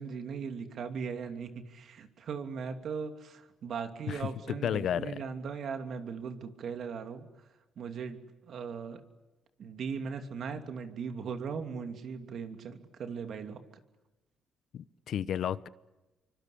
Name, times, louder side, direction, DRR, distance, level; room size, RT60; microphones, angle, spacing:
voice 1, 0.0-7.3 7.8-9.0 9.6-13.6, right 6 dB, 65° right, 2.9 m, -38 dB
voice 2, 4.5-5.1 14.7-15.7, left 9 dB, 70° left, 0.9 m, -32 dB
27.0 x 24.5 x 8.7 m
cardioid pair, 90°, 0 cm